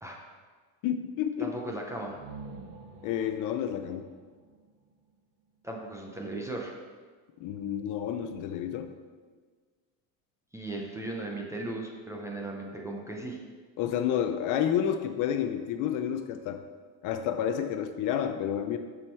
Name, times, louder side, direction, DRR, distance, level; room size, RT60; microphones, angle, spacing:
voice 1, 0.8-1.5 3.0-4.0 7.4-8.9 13.8-16.6 17.0-18.8, left 9 dB, 45° left, 8 dB, 0.5 m, -30 dB
voice 2, 1.4-2.2 5.6-6.7 10.5-13.4, right 2 dB, 5° right, -1 dB, 0.5 m, -37 dB
sound 1, 1.9-5.7, right 4 dB, 90° right, 1.3 m, -48 dB
7.5 x 6.3 x 4.5 m, 1.5 s
cardioid pair, 165°, 43 cm